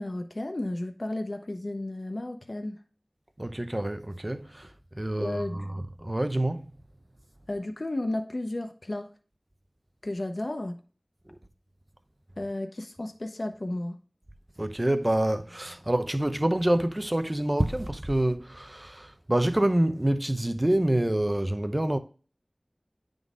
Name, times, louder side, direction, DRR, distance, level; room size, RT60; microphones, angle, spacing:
voice 1, 0.0-2.8 5.2-5.6 7.5-9.1 10.0-10.7 12.4-14.0, left 1 dB, 65° left, 0.8 m, -33 dB
voice 2, 3.4-6.7 14.6-22.0, right 1 dB, 30° right, 0.7 m, -27 dB
9.3 x 3.9 x 3.6 m
wide cardioid pair, 40°, 0 cm